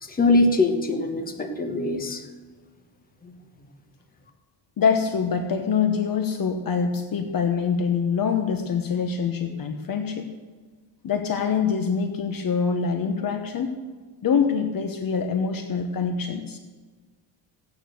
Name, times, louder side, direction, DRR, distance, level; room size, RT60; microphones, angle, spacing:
voice 1, 0.0-2.3 3.2-3.3, left 2 dB, 15° left, 4 dB, 1.3 m, -23 dB
voice 2, 4.8-10.3 11.0-13.7 14.2-16.6, left 6 dB, 45° left, 6 dB, 1.1 m, -25 dB
15.0 x 9.4 x 6.6 m, 1.4 s
cardioid pair, 155°, 50 cm